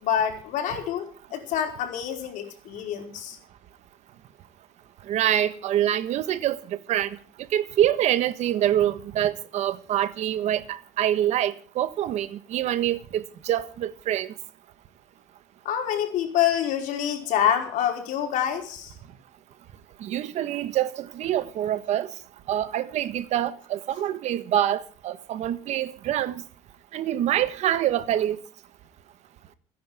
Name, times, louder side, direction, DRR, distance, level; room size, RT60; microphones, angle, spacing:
voice 1, 0.0-3.4 15.6-18.9, left 9 dB, 85° left, 4.8 m, -26 dB
voice 2, 5.1-7.2 7.5-14.3 20.0-22.1 22.5-26.4 26.9-28.4, right 11 dB, 60° right, 1.4 m, -25 dB
29.5 x 10.5 x 3.6 m
cardioid pair, 180°, 13 cm